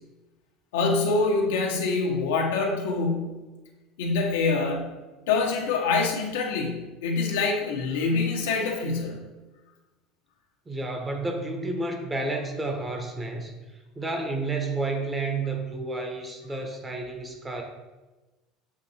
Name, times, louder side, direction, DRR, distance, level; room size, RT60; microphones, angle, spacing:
voice 1, 0.7-3.4 4.0-4.9 5.3-9.2, left 4 dB, 90° left, 0 dB, 0.9 m, -25 dB
voice 2, 10.7-17.6, right 2 dB, 20° right, 3 dB, 0.9 m, -31 dB
7.1 x 2.6 x 2.8 m, 1.1 s
supercardioid pair, 110°, 0 cm